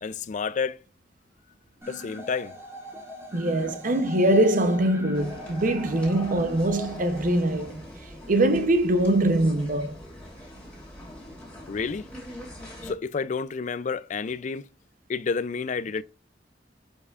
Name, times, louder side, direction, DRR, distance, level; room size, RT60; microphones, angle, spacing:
voice 1, 0.0-0.8 1.9-2.5 11.7-12.1 12.8-14.7 15.1-16.0, left 5 dB, 45° left, 0.4 m, -30 dB
sound 1, 1.8-7.8, equal, 15° right, 2.3 m, -41 dB
voice 2, 3.3-7.8 8.3-10.0, right 1 dB, 50° right, 0.8 m, -23 dB
sound 2, 5.1-12.9, equal, 10° left, 3.2 m, -43 dB
7.8 x 5.4 x 2.4 m
head